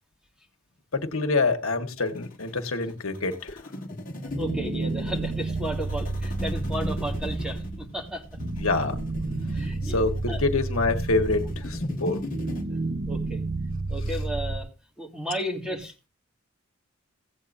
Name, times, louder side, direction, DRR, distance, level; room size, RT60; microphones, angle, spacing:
voice 1, 0.9-3.6 8.4-9.0 9.9-12.2, left 3 dB, 80° left, 5 dB, 1.5 m, -26 dB
sound 1, 2.0-12.6, equal, 40° left, 1.6 m, -37 dB
sound 2, 4.3-14.6, right 2 dB, 45° right, 0.9 m, -31 dB
voice 2, 4.4-8.2 9.5-10.0 10.3-10.4 13.1-13.4 13.9-14.7 15.0-16.1, right 1 dB, 5° right, 0 dB, 2.1 m, -33 dB
16.5 x 8.6 x 2.6 m, 0.29 s
head